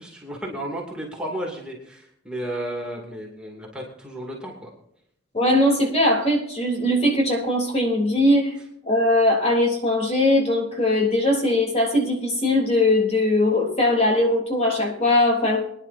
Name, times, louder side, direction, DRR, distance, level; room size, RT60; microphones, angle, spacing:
voice 1, 0.0-4.7, right 1 dB, 5° right, -2 dB, 2.6 m, -33 dB
voice 2, 5.3-8.6 8.9-15.6, left 1 dB, 35° left, 0 dB, 3.4 m, -20 dB
23.0 x 10.5 x 2.7 m, 0.75 s
head